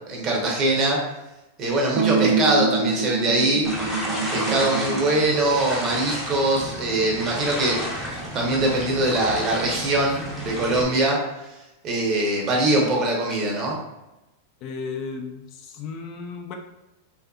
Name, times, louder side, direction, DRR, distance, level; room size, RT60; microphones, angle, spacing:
voice 1, 0.1-1.0 1.6-3.7 4.3-7.8 8.3-11.2 11.8-13.8, right 2 dB, 40° right, -2 dB, 0.8 m, -22 dB
sound 1, 2.0-5.1, right 4 dB, 60° right, 0.4 m, -25 dB
sound 2, 3.6-10.8, equal, 5° right, 0.6 m, -31 dB
voice 2, 14.6-16.5, left 5 dB, 45° left, 3 dB, 0.4 m, -34 dB
2.6 x 2.5 x 2.4 m, 0.96 s
hypercardioid pair, 120°, 0 cm